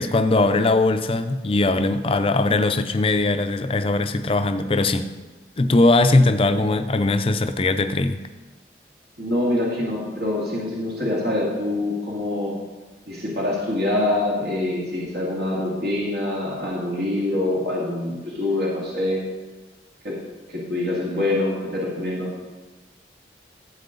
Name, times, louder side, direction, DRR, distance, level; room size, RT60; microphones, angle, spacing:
voice 1, 0.0-5.1 5.6-8.2, left 2 dB, 30° left, 9 dB, 0.5 m, -20 dB
voice 2, 9.2-12.5 13.1-19.2 20.0-20.2 20.5-22.3, left 1 dB, 70° right, -5 dB, 2.2 m, -25 dB
12.5 x 7.7 x 3.9 m, 1.2 s
head